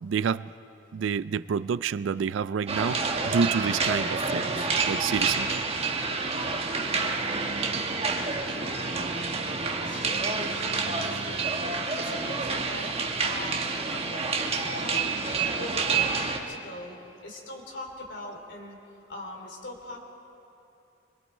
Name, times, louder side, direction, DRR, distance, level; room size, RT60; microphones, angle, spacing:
voice 1, 0.0-0.5 0.9-5.6, right 6 dB, 85° right, 17 dB, 0.4 m, -29 dB
sound 1, 2.7-16.4, right 4 dB, 35° right, 1.3 m, -28 dB
voice 2, 6.6-7.1 8.0-9.2 9.8-15.1 15.6-18.8 19.1-20.0, left 1 dB, 70° left, 0 dB, 3.3 m, -41 dB
26.0 x 22.5 x 4.4 m, 2.7 s
head